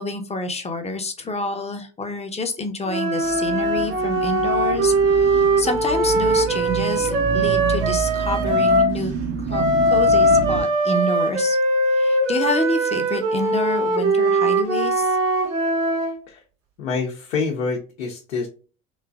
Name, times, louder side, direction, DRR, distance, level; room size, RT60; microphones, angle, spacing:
voice 1, 0.0-9.1 9.4-11.6 11.9-15.2, left 2 dB, 15° left, 6 dB, 0.7 m, -28 dB
sound 1, 2.9-8.9 9.5-16.2, right 1 dB, 75° right, 1.4 m, -20 dB
sound 2, 3.2-10.6, right 4 dB, 40° right, 0.6 m, -29 dB
voice 2, 16.8-18.5, left 4 dB, 75° left, -1 dB, 0.8 m, -26 dB
3.1 x 3.1 x 2.3 m, 0.36 s
figure-of-eight pair, 60°, 39 cm